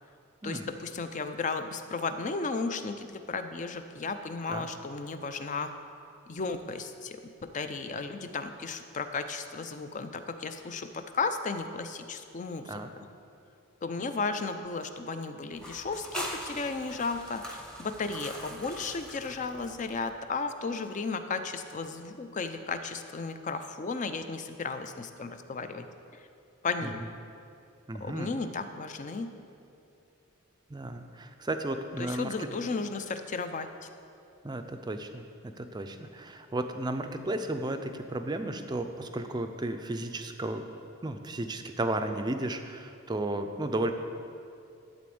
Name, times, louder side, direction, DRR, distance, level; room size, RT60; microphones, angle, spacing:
voice 1, 0.4-5.7 6.3-12.8 13.8-25.9 26.6-27.0 28.0-29.3 32.0-33.7, left 4 dB, 35° left, 8 dB, 0.5 m, -34 dB
sound 1, 15.5-20.1, equal, 5° left, 0.8 m, -42 dB
voice 2, 27.9-28.3 30.7-32.3 34.4-40.6 41.0-43.9, right 2 dB, 20° right, 7 dB, 0.5 m, -34 dB
12.0 x 4.2 x 7.7 m, 2.5 s
head